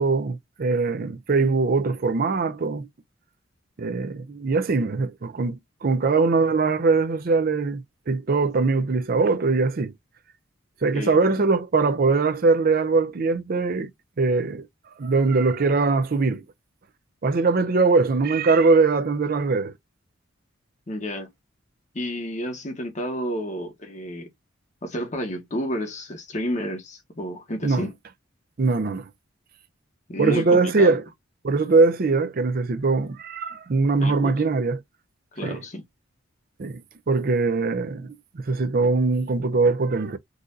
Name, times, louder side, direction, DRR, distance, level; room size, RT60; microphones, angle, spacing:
voice 1, 0.0-2.9 3.8-9.9 10.8-13.9 14.2-14.7 15.0-16.4 17.2-19.7 27.6-27.8 28.6-29.1 30.2-31.0 31.4-34.8 35.4-35.6 36.6-36.8 37.1-40.2, right 4 dB, 45° right, 0.5 m, -21 dB
voice 2, 10.9-11.4 20.9-21.3 21.9-24.3 24.8-27.9 30.1-31.0 34.0-34.3 35.3-35.8, equal, 35° left, 1.2 m, -31 dB
4.0 x 2.5 x 2.5 m
head